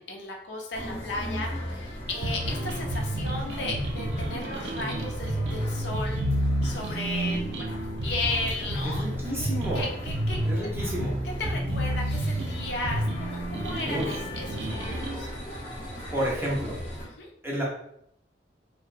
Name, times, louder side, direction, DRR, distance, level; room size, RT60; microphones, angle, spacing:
voice 1, 0.0-7.8 8.0-9.0 9.7-10.7 11.4-15.3 17.2-17.3, left 2 dB, 70° left, 0 dB, 0.5 m, -35 dB
sound 1, 0.7-17.0, equal, 35° left, 0.8 m, -37 dB
sound 2, 2.2-15.2, right 1 dB, 85° right, 0.4 m, -30 dB
voice 2, 8.8-9.9 10.5-11.2 13.9-14.1 16.1-16.8 17.4-17.6, equal, 15° right, -5 dB, 0.7 m, -30 dB
2.7 x 2.1 x 2.4 m, 0.74 s
head